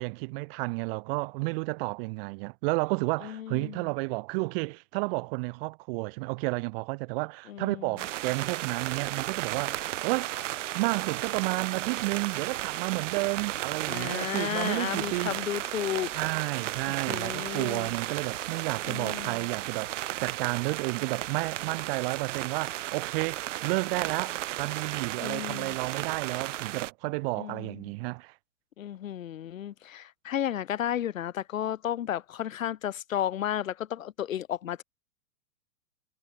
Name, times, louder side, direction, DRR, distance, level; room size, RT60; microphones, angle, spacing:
voice 1, 0.0-10.3 10.7-15.4 16.1-28.3, right 28 dB, 40° right, 1.8 m, -31 dB
voice 2, 3.2-3.8 7.5-8.0 13.9-16.1 17.1-17.9 18.9-19.5 25.2-25.8 27.4-27.8 28.8-34.8, left 11 dB, 60° left, 2.7 m, -33 dB
sound 1, 8.0-26.9, right 14 dB, 55° right, 1.0 m, -34 dB
figure-of-eight pair, 110°, 44 cm